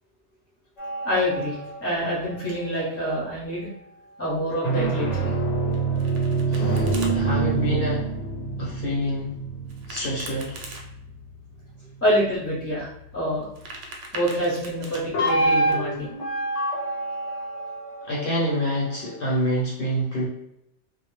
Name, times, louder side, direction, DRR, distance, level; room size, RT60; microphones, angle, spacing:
sound 1, 0.8-3.4 4.5-11.3 15.1-19.4, right 3 dB, 85° left, 0.9 m, -27 dB
voice 1, 1.0-3.7 4.2-5.3 6.7-6.8 12.0-13.5 14.1-16.2, equal, 15° left, -5 dB, 0.6 m, -26 dB
Domestic sounds home sounds, 5.7-7.1 9.7-10.8 13.4-15.0, right 2 dB, 85° right, 0.9 m, -40 dB
voice 2, 6.5-8.0 8.6-9.3 9.9-10.5 18.0-20.3, equal, 55° left, -5 dB, 0.7 m, -27 dB
2.0 x 2.0 x 3.0 m, 0.78 s
omnidirectional pair, 1.2 m